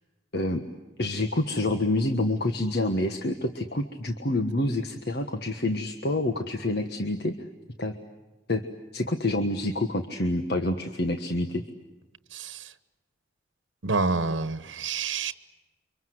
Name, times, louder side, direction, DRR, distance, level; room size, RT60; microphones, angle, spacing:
voice 1, 0.3-0.7 1.0-7.3 7.8-8.0 8.5-8.6 8.9-11.6, left 1 dB, 55° left, 6 dB, 1.5 m, -27 dB
voice 2, 12.3-12.7 13.8-15.3, right 4 dB, 85° right, 12 dB, 1.2 m, -28 dB
30.0 x 25.0 x 7.9 m, 1.1 s
head